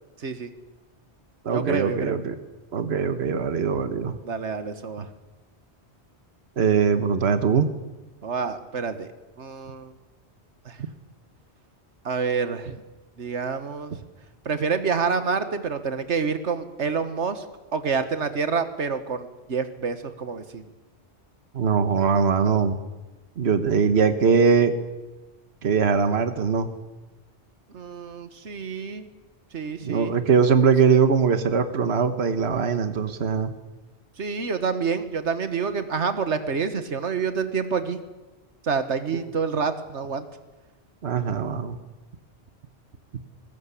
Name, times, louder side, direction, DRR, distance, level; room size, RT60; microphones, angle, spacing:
voice 1, 0.2-0.5 1.5-2.2 4.2-5.1 8.2-9.1 9.4-9.9 10.7-10.8 12.1-12.8 13.2-13.9 14.5-17.5 17.7-20.6 27.7-29.1 29.5-30.1 34.2-38.0 38.6-40.3, right 5 dB, 90° right, 10 dB, 1.7 m, -27 dB
voice 2, 1.4-2.4 2.7-4.2 6.6-7.7 21.5-22.8 23.4-24.7 25.6-26.7 29.8-33.5 39.1-39.2 41.0-41.8, right 6 dB, 70° right, 9 dB, 1.5 m, -21 dB
21.0 x 19.0 x 8.4 m, 1.1 s
omnidirectional pair, 1.1 m